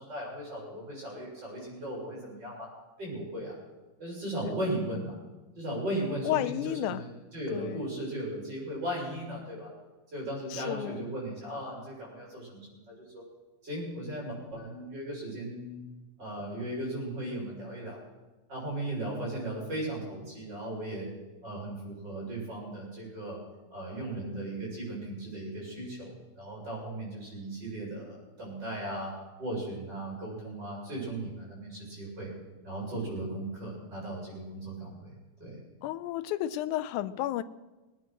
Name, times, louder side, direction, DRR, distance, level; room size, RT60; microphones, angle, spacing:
voice 1, 0.0-2.7 3.0-3.5 4.0-5.2 5.6-9.7 10.1-13.2 13.6-15.8 16.2-18.0 18.5-21.1 21.4-23.4 23.7-29.1 29.4-32.3 32.6-35.1 35.4-35.6, right 1 dB, 30° right, -4 dB, 6.9 m, -37 dB
voice 2, 6.2-7.0 7.5-7.8 10.5-11.1 35.8-37.4, left 13 dB, 80° left, 14 dB, 2.0 m, -32 dB
20.0 x 9.7 x 6.3 m, 1.1 s
omnidirectional pair, 3.7 m